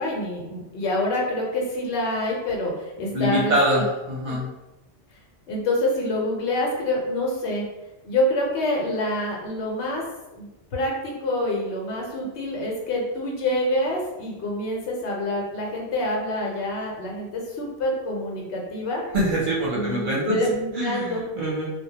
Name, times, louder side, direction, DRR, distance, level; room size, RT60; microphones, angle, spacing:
voice 1, 0.0-3.9 4.3-4.4 5.5-7.6 8.0-10.0 10.3-19.0 19.7-21.2, left 1 dB, 75° left, -1 dB, 0.9 m, -26 dB
voice 2, 3.1-4.5 19.1-20.4 20.7-21.7, equal, 55° right, -6 dB, 0.8 m, -24 dB
2.1 x 2.1 x 2.8 m, 1.0 s
omnidirectional pair, 1.1 m